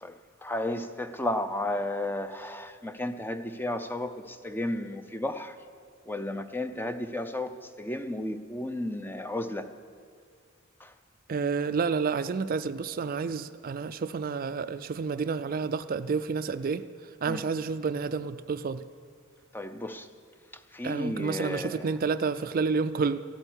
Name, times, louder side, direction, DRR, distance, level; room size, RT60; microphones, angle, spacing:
voice 1, 0.0-5.6 6.1-9.7 10.8-10.9 17.3-17.4 19.5-20.1 20.7-21.9, left 1 dB, 10° left, 10 dB, 0.6 m, -33 dB
voice 2, 11.3-16.8 17.2-18.8 20.8-23.2, right 5 dB, 45° right, 13 dB, 0.4 m, -29 dB
14.5 x 9.0 x 9.8 m, 2.1 s
head